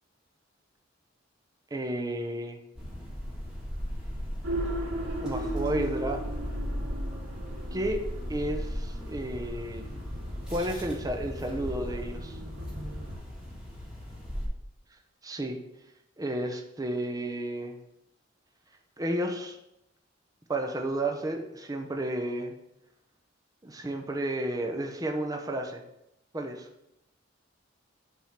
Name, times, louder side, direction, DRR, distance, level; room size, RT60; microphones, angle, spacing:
voice 1, 1.7-2.6 5.2-6.2 7.7-8.0 8.3-10.0 10.5-12.4 15.2-15.6 16.2-17.8 19.0-19.6 20.5-22.5 23.6-25.8 26.3-26.7, right 1 dB, 20° right, 4 dB, 0.7 m, -32 dB
sound 1, 2.8-14.5, equal, 5° right, 2.2 m, -40 dB
sound 2, 4.4-13.2, equal, 80° right, 2.9 m, -35 dB
7.3 x 3.7 x 5.7 m, 0.83 s
head